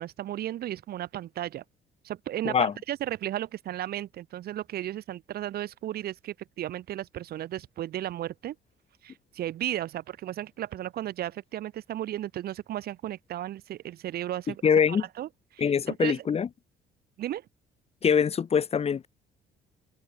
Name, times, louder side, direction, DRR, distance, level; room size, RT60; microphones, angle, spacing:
voice 1, 0.0-1.6 2.0-8.6 9.0-14.6 14.9-16.2 17.2-17.4, right 12 dB, 65° right, 5.5 m, -34 dB
voice 2, 14.6-15.0 15.6-16.5 18.0-19.1, left 7 dB, 35° left, 1.8 m, -23 dB
cardioid pair, 110°, 17 cm